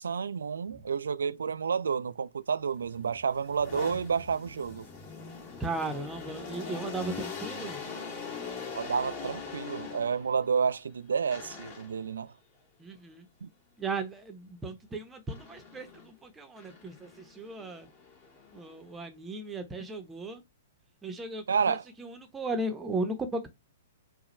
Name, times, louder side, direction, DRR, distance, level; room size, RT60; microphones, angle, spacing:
voice 1, 0.0-4.9 8.7-12.3 13.4-13.5 21.5-21.8, right 6 dB, 70° right, 0.3 m, -30 dB
sound 1, 2.8-10.4 11.3-12.1 15.3-16.1 16.6-18.9, left 5 dB, 40° left, 2.4 m, -42 dB
voice 2, 5.6-7.8 12.8-13.3 13.8-17.9 18.5-20.4 21.0-23.5, right 2 dB, 15° right, 0.9 m, -36 dB
4.8 x 2.3 x 3.1 m
figure-of-eight pair, 115°, 0 cm